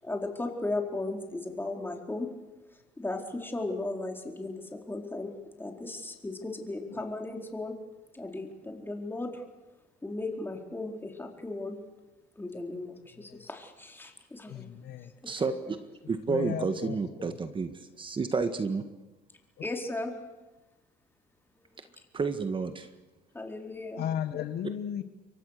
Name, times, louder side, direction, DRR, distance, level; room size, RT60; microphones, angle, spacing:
voice 1, 0.0-2.3 3.0-5.3 5.6-7.8 8.1-9.4 10.0-11.8 12.4-14.7 15.4-15.5 19.6-20.1 23.3-24.0, left 2 dB, 10° left, 2 dB, 4.3 m, -36 dB
voice 2, 14.5-15.1 16.3-17.3 23.9-25.0, left 10 dB, 70° left, 8 dB, 1.6 m, -35 dB
voice 3, 15.2-15.8 16.1-18.8 22.1-22.9, right 4 dB, 30° right, 8 dB, 1.7 m, -30 dB
28.0 x 23.0 x 6.7 m, 1.1 s
cardioid pair, 110°, 17 cm